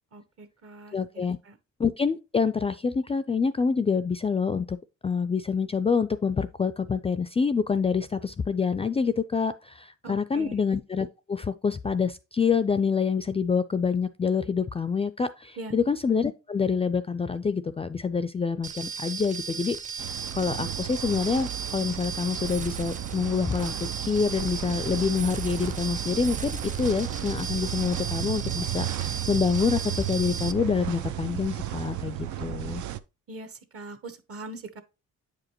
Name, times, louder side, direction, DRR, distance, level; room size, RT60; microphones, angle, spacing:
voice 1, 0.1-1.6 10.0-10.5 15.6-15.7 33.3-34.8, right 2 dB, 50° right, 1.2 m, -42 dB
voice 2, 0.9-1.4 1.8-4.8 5.0-32.8, left 5 dB, 20° left, 0.3 m, -27 dB
sound 1, 18.6-30.5, right 6 dB, 25° right, 0.6 m, -36 dB
sound 2, 20.0-33.0, right 13 dB, 75° right, 0.6 m, -34 dB
8.3 x 5.0 x 2.9 m
cardioid pair, 90°, 30 cm